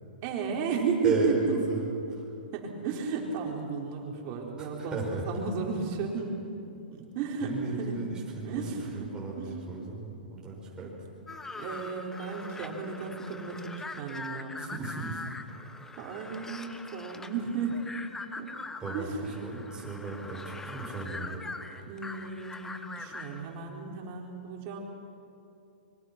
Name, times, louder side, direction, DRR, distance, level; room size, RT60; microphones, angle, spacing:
voice 1, 0.2-1.6 2.5-8.0 8.4-9.1 9.4-9.5 10.8-10.9 11.5-14.7 15.9-18.0 18.4-18.5 18.9-19.3 21.7-24.8, right 5 dB, 40° right, 0 dB, 4.7 m, -34 dB
voice 2, 1.0-2.2 4.6-5.2 7.4-8.6 8.9-10.9 14.6-15.2 18.8-21.4, right 3 dB, 15° right, -4 dB, 6.0 m, -35 dB
sound 1, 11.3-23.5, left 3 dB, 10° left, 1.2 m, -42 dB
26.0 x 23.0 x 6.2 m, 2.7 s
hypercardioid pair, 120°, 5 cm